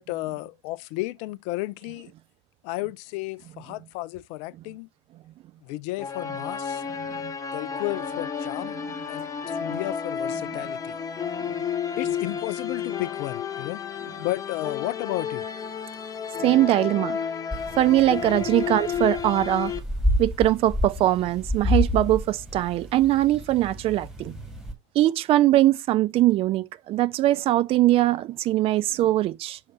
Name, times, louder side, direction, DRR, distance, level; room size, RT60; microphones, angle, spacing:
voice 1, 0.0-2.1 2.6-4.9 5.6-6.8 7.5-8.8 9.1-11.0 12.0-13.8 14.2-15.4, left 20 dB, 50° left, 0.4 m, -33 dB
sound 1, 6.0-19.8, left 7 dB, 20° left, 0.9 m, -31 dB
voice 2, 7.0-7.3 9.7-9.8 11.4-11.5 16.4-17.2 17.8-19.7 20.2-24.4 24.9-29.6, right 14 dB, 35° right, 0.5 m, -22 dB
sound 2, 17.5-24.7, left 1 dB, 5° right, 2.1 m, -30 dB
6.5 x 2.8 x 5.4 m
hypercardioid pair, 85°, 16 cm